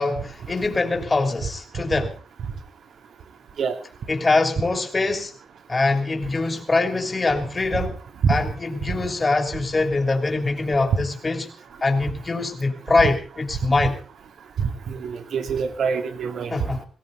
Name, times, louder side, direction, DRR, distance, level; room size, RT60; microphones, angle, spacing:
voice 1, 0.0-2.1 4.1-5.3 5.7-8.0 8.3-11.5 11.8-14.0 16.5-16.9, left 3 dB, 30° left, 3.3 m, -23 dB
voice 2, 14.6-16.5, right 6 dB, 75° right, 2.4 m, -25 dB
19.0 x 17.0 x 4.1 m
cardioid pair, 85°, 0 cm